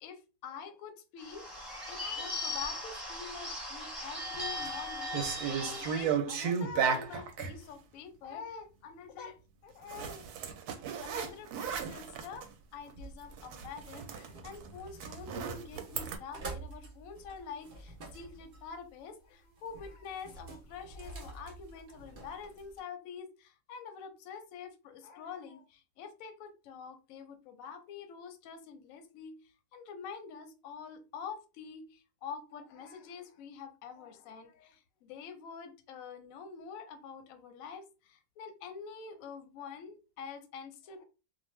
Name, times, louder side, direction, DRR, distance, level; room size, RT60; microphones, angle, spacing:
voice 1, 0.0-9.4 9.6-10.3 11.0-12.5 12.7-29.3 29.7-41.0, left 6 dB, 65° left, 0.9 m, -46 dB
Bird / Bell, 1.2-6.2, left 1 dB, ahead, 1.0 m, -39 dB
sound 1, 4.3-4.7 5.1-7.6 9.9-12.5 12.9-13.0 13.3-16.2, right 7 dB, 75° right, 1.0 m, -35 dB
sound 2, 12.0-22.8, right 3 dB, 60° right, 0.6 m, -49 dB
2.5 x 2.3 x 3.0 m
omnidirectional pair, 1.8 m